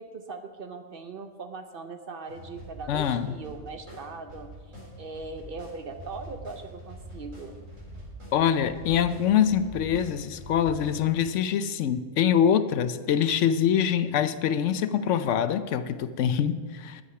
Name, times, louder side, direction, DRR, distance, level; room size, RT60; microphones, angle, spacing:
voice 1, 0.0-4.5 5.0-7.5, right 3 dB, 50° right, 7 dB, 0.8 m, -40 dB
sound 1, 2.3-11.1, right 1 dB, 80° right, 4.4 m, -44 dB
voice 2, 2.9-3.4 8.3-17.0, left 8 dB, 75° left, 12 dB, 0.9 m, -24 dB
11.5 x 7.8 x 5.7 m, 1.5 s
omnidirectional pair, 1.3 m